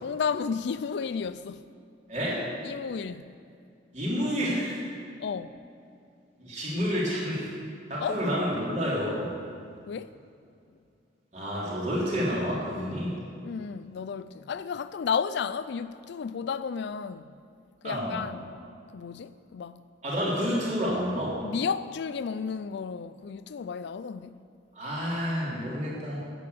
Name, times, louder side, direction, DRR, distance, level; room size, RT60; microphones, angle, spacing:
voice 1, 0.0-1.7 2.6-3.3 5.2-5.5 8.0-8.2 9.9-10.1 13.4-17.3 17.8-18.6 18.9-19.8 21.4-24.4, left 6 dB, 65° left, 0.4 m, -32 dB
voice 2, 2.1-2.4 3.9-4.8 6.4-7.5 7.9-9.3 11.3-13.2 17.8-18.2 20.0-21.4 24.8-26.3, equal, 40° right, 3.6 m, -29 dB
11.5 x 8.7 x 8.4 m
head